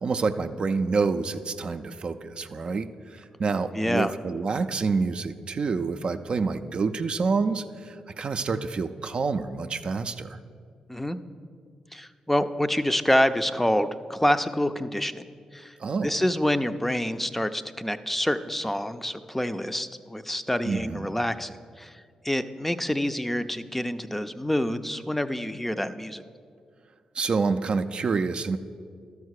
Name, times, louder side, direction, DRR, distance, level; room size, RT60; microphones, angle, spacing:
voice 1, 0.0-10.4 15.8-16.2 20.6-21.1 27.1-28.6, right 4 dB, 50° right, 8 dB, 0.4 m, -28 dB
voice 2, 3.7-4.1 10.9-11.2 11.9-15.2 15.5-15.7 16.0-26.2, left 1 dB, 10° left, 11 dB, 0.5 m, -27 dB
12.0 x 4.8 x 6.4 m, 2.2 s
supercardioid pair, 50°, 2 cm